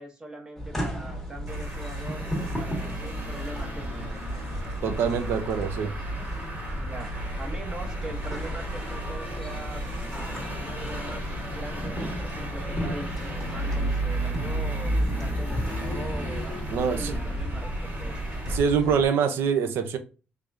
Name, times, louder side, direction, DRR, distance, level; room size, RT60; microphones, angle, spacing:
voice 1, 0.0-4.2 6.7-7.1 7.4-18.2, right 1 dB, 20° right, 0.9 m, -42 dB
sound 1, 0.6-19.1, right 1 dB, ahead, 1.1 m, -32 dB
Traffic noise roadway noise, 1.5-18.6, right 1 dB, 40° right, 1.5 m, -37 dB
voice 2, 4.8-5.9 16.7-17.2 18.5-20.0, right 6 dB, 70° right, 0.6 m, -25 dB
sound 2, 10.3-16.4, left 10 dB, 65° left, 0.5 m, -44 dB
3.5 x 3.3 x 2.5 m
cardioid pair, 150°, 4 cm